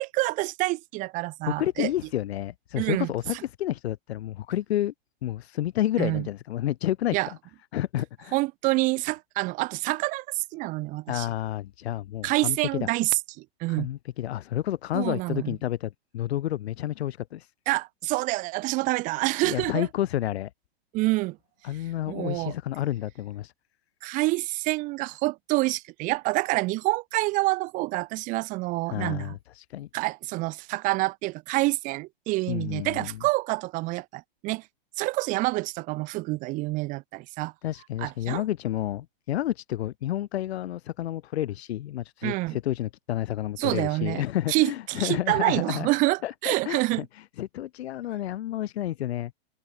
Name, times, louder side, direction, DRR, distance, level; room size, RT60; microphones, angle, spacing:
voice 1, 0.0-1.9 2.7-3.1 6.0-6.3 7.1-7.3 8.3-11.3 12.2-13.9 14.9-15.6 17.7-19.9 20.9-21.4 22.1-22.5 24.0-29.4 29.9-34.6 35.0-37.5 38.0-38.4 42.2-42.6 43.6-47.1, right 22 dB, 25° right, 0.7 m, -27 dB
voice 2, 1.4-4.9 5.2-7.2 7.7-8.3 11.1-12.9 13.7-17.5 19.4-20.5 21.6-23.5 28.9-29.9 32.5-33.2 37.6-45.9 46.2-49.3, left 13 dB, 80° left, 0.7 m, -30 dB
hypercardioid pair, 140°, 31 cm